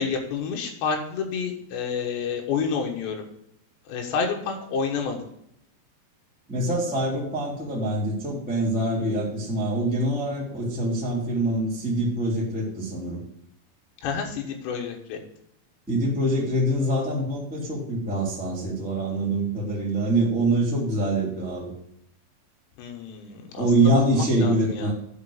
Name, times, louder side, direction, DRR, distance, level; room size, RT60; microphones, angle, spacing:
voice 1, 0.0-3.3 3.9-5.2 14.0-15.2 22.8-23.9 24.2-24.9, left 5 dB, 70° left, 2 dB, 3.4 m, -29 dB
voice 2, 6.5-13.2 15.9-21.7 23.6-24.9, right 1 dB, 5° right, -5 dB, 1.5 m, -24 dB
10.5 x 5.2 x 5.0 m, 0.74 s
omnidirectional pair, 5.6 m